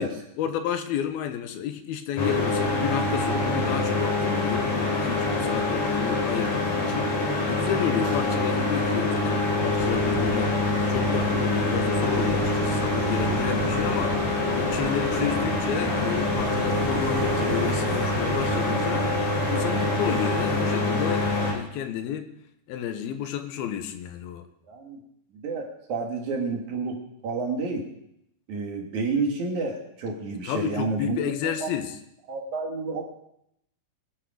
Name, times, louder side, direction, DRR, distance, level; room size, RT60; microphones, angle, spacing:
voice 1, 0.0-10.6 10.9-19.2 19.5-22.3 22.7-24.5 30.4-32.0, left 9 dB, 90° left, 8 dB, 2.9 m, -31 dB
sound 1, 2.2-21.5, left 2 dB, 55° left, 4.0 m, -25 dB
sound 2, 9.8-21.1, right 7 dB, 80° right, 2.7 m, -35 dB
voice 2, 24.7-25.0 25.3-27.0 27.2-27.8 28.5-31.7 32.3-33.0, right 3 dB, 55° right, 1 dB, 3.1 m, -30 dB
21.5 x 8.1 x 4.9 m, 0.76 s
omnidirectional pair, 4.3 m